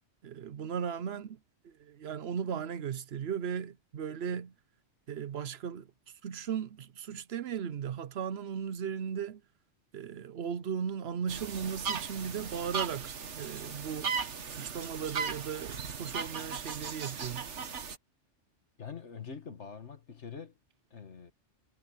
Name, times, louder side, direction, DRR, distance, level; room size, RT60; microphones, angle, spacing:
voice 1, 0.2-4.5 5.1-5.9 6.2-9.4 9.9-14.1 14.5-17.5, right 7 dB, 65° right, 0.9 m, -37 dB
sound 1, 11.3-18.0, right 6 dB, 80° right, 1.6 m, -37 dB
voice 2, 18.8-20.5 20.9-21.3, left 6 dB, 75° left, 2.1 m, -44 dB
omnidirectional pair, 1.2 m